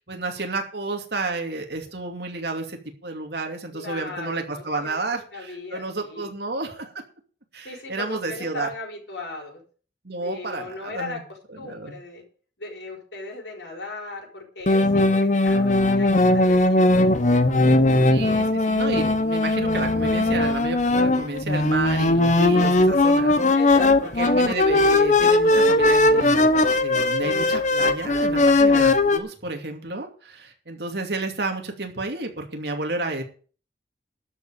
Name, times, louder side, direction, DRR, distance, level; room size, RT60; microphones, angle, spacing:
voice 1, 0.0-6.9 7.5-8.7 10.0-11.2 11.6-12.0 18.1-23.6 24.2-33.2, right 2 dB, 70° right, 3 dB, 2.7 m, -31 dB
voice 2, 3.7-5.0 5.3-6.3 7.6-9.6 10.2-11.2 11.6-12.2 12.6-17.1 17.5-17.8 23.6-24.6, left 3 dB, 85° left, 1 dB, 4.7 m, -37 dB
sound 1, 14.7-29.2, left 2 dB, 40° left, 1.0 m, -19 dB
12.5 x 5.6 x 8.9 m, 0.41 s
head